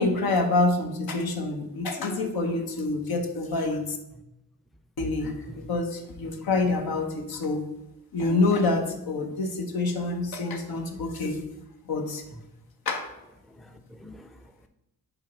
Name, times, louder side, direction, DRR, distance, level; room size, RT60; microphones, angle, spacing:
voice 1, 0.0-4.0 5.0-7.6 8.1-11.4 11.9-12.2 12.9-13.1, left 3 dB, 80° left, 1.1 m, -27 dB
voice 2, 13.5-14.7, left 1 dB, ahead, 0.5 m, -47 dB
7.2 x 3.0 x 5.5 m
cardioid pair, 70°, 36 cm